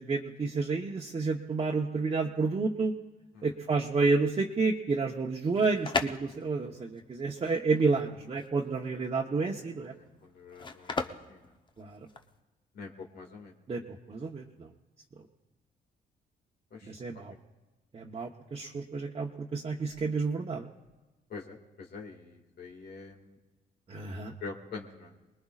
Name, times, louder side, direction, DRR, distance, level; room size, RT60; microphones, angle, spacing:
voice 1, 0.0-2.9 3.4-9.9 11.8-12.0 13.7-13.8 14.1-14.7 16.8-17.3 17.9-20.7 23.9-24.3, right 4 dB, 35° right, -1 dB, 1.0 m, -30 dB
sound 1, 5.3-12.4, left 4 dB, 25° left, 0.8 m, -38 dB
voice 2, 9.4-11.5 12.7-13.5 16.7-17.4 18.2-18.3 21.3-23.4 24.4-25.1, left 4 dB, 70° left, 1 dB, 2.0 m, -46 dB
28.5 x 20.5 x 2.4 m, 1.2 s
cardioid pair, 120°, 17 cm